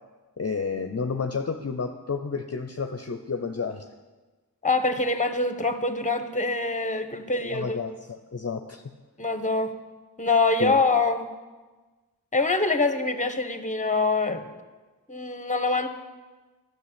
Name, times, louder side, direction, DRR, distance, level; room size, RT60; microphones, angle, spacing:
voice 1, 0.4-3.9 7.3-8.8 10.6-10.8, left 5 dB, 45° left, 6 dB, 0.7 m, -31 dB
voice 2, 4.6-7.8 9.2-9.7 10.2-11.3 12.3-14.5 15.1-15.9, left 3 dB, 20° left, 9 dB, 1.1 m, -24 dB
11.5 x 6.6 x 8.4 m, 1.3 s
cardioid pair, 45°, 36 cm